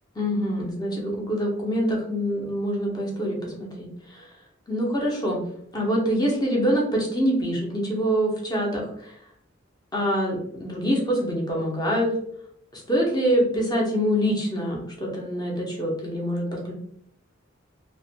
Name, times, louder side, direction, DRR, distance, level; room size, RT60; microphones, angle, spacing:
voice 1, 0.2-4.3 4.7-5.4 5.7-9.1 9.9-12.1 12.7-16.7, equal, 20° left, -2 dB, 0.6 m, -25 dB
2.4 x 2.1 x 2.7 m, 0.67 s
head